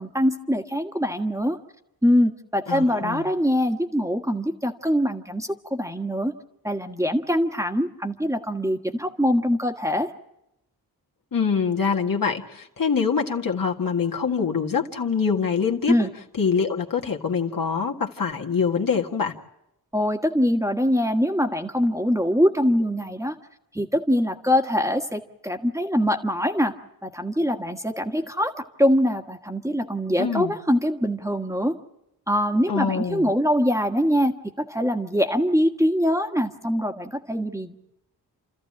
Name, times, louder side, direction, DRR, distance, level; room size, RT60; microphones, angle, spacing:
voice 1, 0.0-1.6 2.0-6.3 6.6-10.1 15.9-16.1 19.9-23.3 23.7-26.7 27.0-28.5 28.8-31.8 32.3-34.3 34.7-37.8, equal, 10° right, 4 dB, 1.5 m, -23 dB
voice 2, 2.7-3.3 11.3-15.9 16.4-19.3 30.2-30.5 32.7-33.3, left 6 dB, 55° left, 1 dB, 1.8 m, -24 dB
29.0 x 14.0 x 8.7 m, 0.86 s
wide cardioid pair, 85°, 39 cm